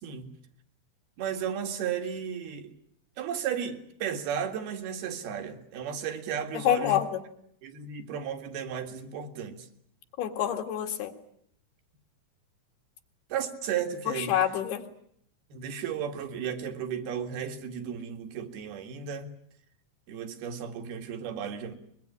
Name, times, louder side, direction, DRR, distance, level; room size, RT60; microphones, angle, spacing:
voice 1, 0.0-0.4 1.2-2.7 3.2-7.0 7.6-9.7 13.3-14.4 15.5-19.3 20.1-21.7, right 8 dB, 80° right, 4.0 m, -34 dB
voice 2, 6.7-7.1 10.2-11.1 14.1-14.8, left 11 dB, 85° left, 4.0 m, -26 dB
23.0 x 22.0 x 9.7 m
omnidirectional pair, 4.4 m